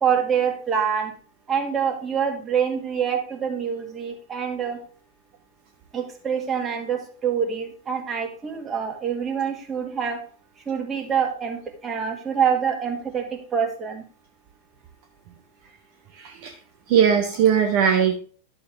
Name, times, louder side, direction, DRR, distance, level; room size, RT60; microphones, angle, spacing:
voice 1, 0.0-1.1 1.5-4.8 5.9-10.2 10.7-14.0, right 7 dB, 20° right, 2 dB, 2.1 m, -25 dB
voice 2, 16.2-16.5 16.9-18.2, right 8 dB, 45° right, 4 dB, 1.1 m, -19 dB
11.5 x 7.0 x 3.4 m, 0.42 s
figure-of-eight pair, 90°, 0 cm